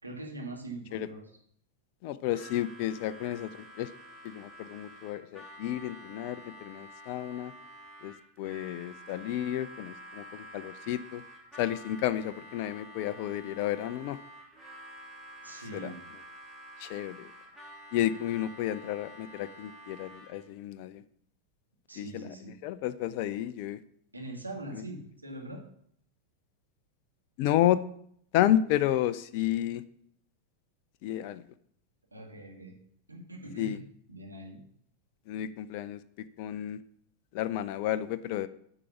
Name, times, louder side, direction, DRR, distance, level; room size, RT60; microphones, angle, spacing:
voice 1, 0.0-1.2 15.4-16.0 21.9-22.6 24.1-25.6 32.1-32.8 33.1-33.8 34.1-34.6, right 1 dB, 85° right, 0 dB, 2.0 m, -42 dB
voice 2, 2.0-3.9 4.2-7.5 8.0-11.2 11.6-14.2 15.7-15.9 16.8-17.3 17.9-21.0 22.0-22.4 22.6-23.8 24.7-24.8 27.4-27.8 28.3-29.8 31.0-31.4 33.6-33.8 35.3-36.0 36.4-36.8 37.3-38.5, left 12 dB, 45° left, 14 dB, 0.5 m, -31 dB
Harmonica, 2.3-20.5, equal, ahead, 2.6 m, -49 dB
8.4 x 4.9 x 7.0 m, 0.67 s
figure-of-eight pair, 90°, 0 cm